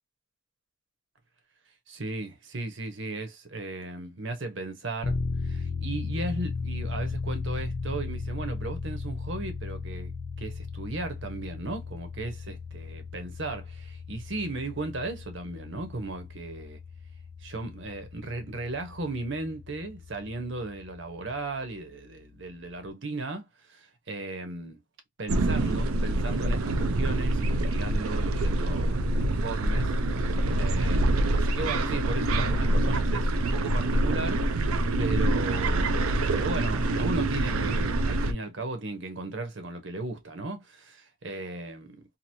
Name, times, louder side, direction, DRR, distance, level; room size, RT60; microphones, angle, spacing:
voice 1, 1.9-5.2 5.4-10.1 10.4-16.8 17.4-24.8 25.2-42.0, right 2 dB, 60° right, 0.9 m, -36 dB
sound 1, 5.0-21.4, left 4 dB, 90° left, 0.7 m, -36 dB
sound 2, 25.3-38.3, right 2 dB, 85° right, 0.5 m, -26 dB
2.9 x 2.6 x 2.6 m
head